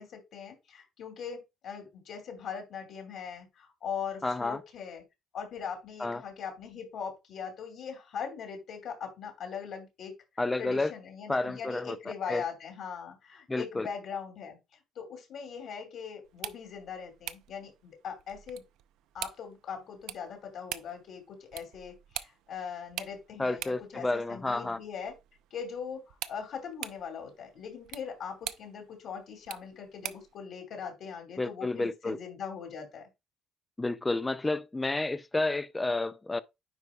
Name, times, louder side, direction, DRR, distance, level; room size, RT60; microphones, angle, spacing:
voice 1, 0.0-5.0 5.3-10.1 10.6-14.6 15.0-18.6 19.1-25.1 25.5-33.1, left 7 dB, 55° left, 2.6 m, -40 dB
voice 2, 4.2-4.6 6.0-6.2 10.4-10.9 11.3-12.4 13.5-13.9 23.4-24.8 31.4-32.2 33.8-36.4, left 2 dB, 10° left, 0.3 m, -30 dB
sound 1, 16.2-30.4, right 13 dB, 90° right, 0.5 m, -45 dB
9.7 x 4.8 x 2.3 m
cardioid pair, 155°, 0 cm